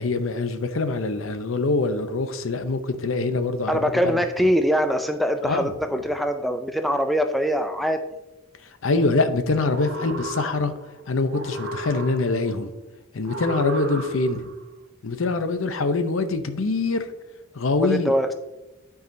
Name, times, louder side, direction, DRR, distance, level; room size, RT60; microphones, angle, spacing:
voice 1, 0.0-3.7 4.0-4.1 5.4-5.7 8.8-10.7 11.1-12.7 13.1-14.5 15.0-17.1 17.5-18.1, left 3 dB, 70° left, 0.7 m, -24 dB
voice 2, 3.7-8.0 11.5-11.7 17.8-18.3, equal, ahead, 0.3 m, -23 dB
Stormy Wind, 9.5-10.9 11.3-12.5 13.2-14.5, equal, 60° right, 1.1 m, -32 dB
12.0 x 4.8 x 2.7 m
head